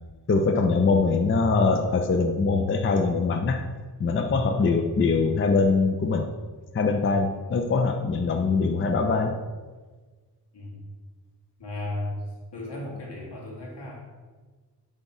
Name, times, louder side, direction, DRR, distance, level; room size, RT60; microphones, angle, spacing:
voice 1, 0.3-3.6 4.0-6.3 6.7-9.3, left 4 dB, 30° left, 5 dB, 0.4 m, -23 dB
voice 2, 11.6-12.1 12.5-14.0, left 2 dB, 85° left, -3 dB, 1.9 m, -35 dB
9.2 x 3.5 x 4.2 m, 1.4 s
wide cardioid pair, 165°, 40 cm